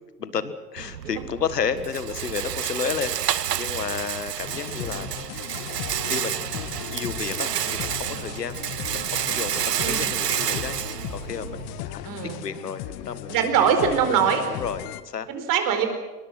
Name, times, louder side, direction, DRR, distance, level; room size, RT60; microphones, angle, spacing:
voice 1, 0.2-5.1 6.0-8.6 8.9-10.8 11.1-12.0 12.4-13.3 14.5-15.3, left 6 dB, 80° left, 14 dB, 1.8 m, -32 dB
Rattle, 0.8-11.8, right 10 dB, 80° right, 0.8 m, -29 dB
sound 1, 4.4-15.0, left 13 dB, 45° left, 1.4 m, -37 dB
voice 2, 12.0-12.4 13.3-14.4 15.3-15.9, right 7 dB, 40° right, 7 dB, 4.8 m, -22 dB
26.0 x 22.0 x 6.2 m, 1.3 s
figure-of-eight pair, 85°, 48 cm